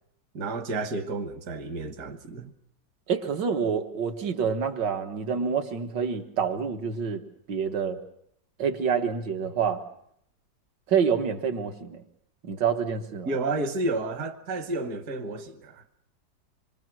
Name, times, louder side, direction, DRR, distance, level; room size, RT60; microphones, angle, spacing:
voice 1, 0.3-2.5 13.3-15.8, right 2 dB, 65° right, 1.8 m, -31 dB
voice 2, 3.1-7.2 7.5-8.0 8.6-9.8 10.9-12.0 12.4-13.3, right 6 dB, 85° right, 2.1 m, -27 dB
26.5 x 23.0 x 6.2 m
omnidirectional pair, 1.9 m